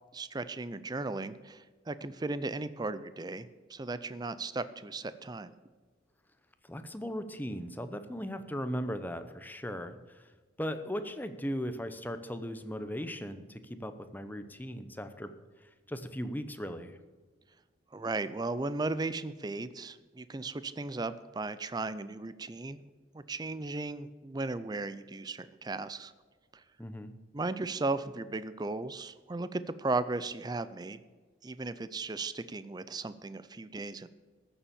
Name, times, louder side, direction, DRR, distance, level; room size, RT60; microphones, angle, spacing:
voice 1, 0.1-5.5 17.9-22.8 23.1-26.1 26.5-26.6 27.3-31.0 31.4-34.1, right 3 dB, 20° right, 14 dB, 0.4 m, -36 dB
voice 2, 6.6-10.3 10.6-15.3 15.6-17.0 26.8-27.1, equal, 10° left, 9 dB, 0.8 m, -38 dB
14.5 x 7.1 x 7.0 m, 1.4 s
head